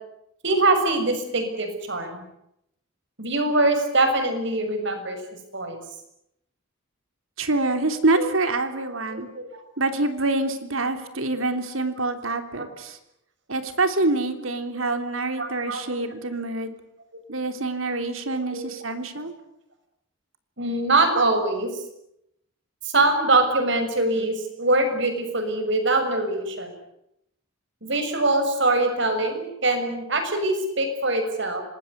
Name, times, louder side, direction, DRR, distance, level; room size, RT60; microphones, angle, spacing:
voice 1, 0.4-2.2 3.2-5.2 5.5-5.8 8.2-8.3 9.1-9.6 11.3-11.4 12.6-12.7 14.7-15.1 15.4-15.8 18.4-18.6 20.6-21.7 22.8-26.7 27.8-31.6, right 2 dB, 60° right, 7 dB, 6.5 m, -23 dB
voice 2, 7.4-9.3 9.8-13.0 13.5-16.7 17.3-19.3, right 2 dB, 85° right, 8 dB, 3.3 m, -26 dB
26.0 x 20.5 x 9.7 m, 0.81 s
head